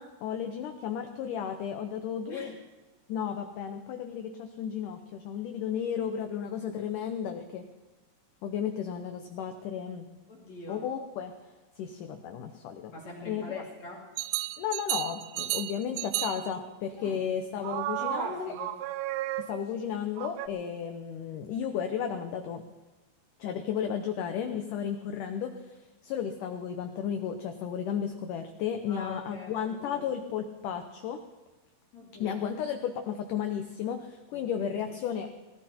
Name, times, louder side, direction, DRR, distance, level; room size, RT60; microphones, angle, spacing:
voice 1, 0.0-2.5 3.1-7.7 8.4-10.1 10.7-11.3 11.8-12.9 13.3-13.6 14.6-18.5 19.5-22.6 23.4-31.2 32.2-35.3, left 8 dB, 75° left, 5 dB, 2.0 m, -34 dB
voice 2, 10.3-10.9 12.9-14.1 17.0-17.2 18.0-18.8 28.9-30.1 31.9-32.4 34.3-34.8, left 2 dB, 45° left, -2 dB, 3.3 m, -43 dB
sound 1, 14.2-16.6 17.6-19.8 20.2-20.5, right 16 dB, 85° right, 2.1 m, -33 dB
20.5 x 14.5 x 4.4 m, 1.2 s
omnidirectional pair, 4.8 m